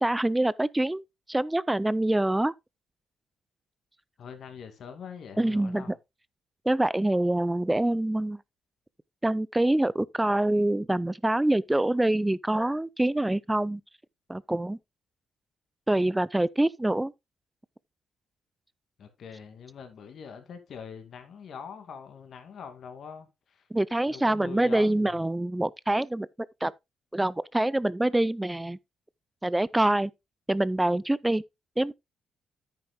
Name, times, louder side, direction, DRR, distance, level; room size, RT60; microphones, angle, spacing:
voice 1, 0.0-1.0 1.3-2.5 5.4-5.9 6.7-8.4 9.2-13.8 14.3-14.8 15.9-17.1 23.7-26.3 26.6-26.7 27.1-28.8 29.4-30.1 30.5-31.4 31.8-31.9, right 1 dB, 10° right, 0.4 m, -25 dB
voice 2, 4.2-6.0 19.0-23.6 24.1-25.2, left 6 dB, 60° left, 2.3 m, -43 dB
10.0 x 9.0 x 2.3 m
cardioid pair, 90°, 0 cm